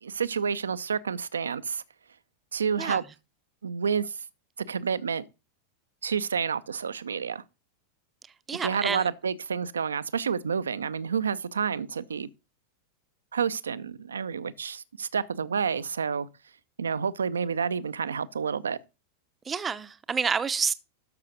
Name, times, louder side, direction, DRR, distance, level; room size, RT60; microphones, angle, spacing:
voice 1, 0.0-1.8 2.5-3.0 3.6-4.1 4.6-5.3 6.0-7.4 8.6-12.3 13.3-16.3 16.8-18.8, right 6 dB, 70° right, 0.5 m, -29 dB
voice 2, 8.5-9.1 19.4-20.7, right 6 dB, 20° right, 0.7 m, -28 dB
13.0 x 5.7 x 3.9 m
figure-of-eight pair, 90°, 0 cm